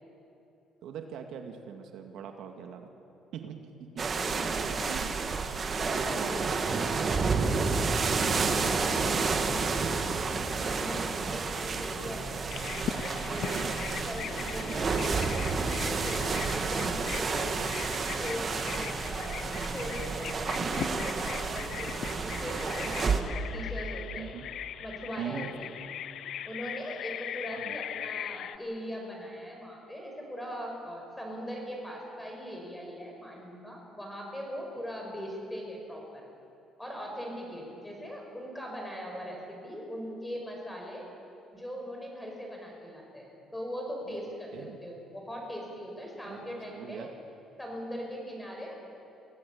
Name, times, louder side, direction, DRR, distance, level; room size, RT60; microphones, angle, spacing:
voice 1, 0.8-2.9 3.3-4.0 4.9-5.1 5.9-6.3 11.5-11.6 13.5-13.8 24.2-24.5 25.2-25.5 27.5-27.8 44.1-44.2 44.5-44.8 46.3-47.1, right 8 dB, 70° right, 4 dB, 2.0 m, -41 dB
sound 1, 4.0-23.2, right 4 dB, 30° right, 1.8 m, -30 dB
voice 2, 4.1-4.8 5.8-7.3 8.4-10.1 10.5-12.4 12.9-15.4 15.8-17.7 18.0-19.4 19.7-20.6 20.9-24.3 24.8-25.7 26.4-36.2 36.8-41.1 41.5-47.1 47.6-48.8, equal, 10° left, 0 dB, 5.6 m, -40 dB
Bird vocalization bird call bird song, 12.5-28.6, left 10 dB, 60° left, 0.7 m, -40 dB
24.5 x 17.0 x 8.6 m, 2.9 s
cardioid pair, 135°, 0 cm